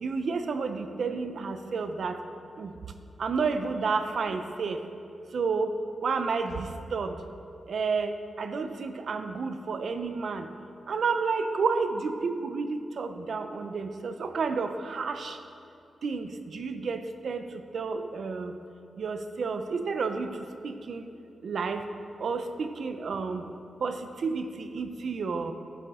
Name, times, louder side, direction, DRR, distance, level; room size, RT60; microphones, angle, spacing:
voice 1, 0.0-2.2 2.6-2.7 3.2-4.8 5.3-5.8 6.0-7.2 7.7-10.5 10.9-15.4 16.0-17.5 17.7-18.5 19.0-20.4 20.6-21.0 21.4-21.8 22.2-23.5 23.8-25.5, right 4 dB, 60° right, 8 dB, 0.6 m, -30 dB
14.0 x 6.9 x 3.7 m, 2.5 s
wide cardioid pair, 140°, 0 cm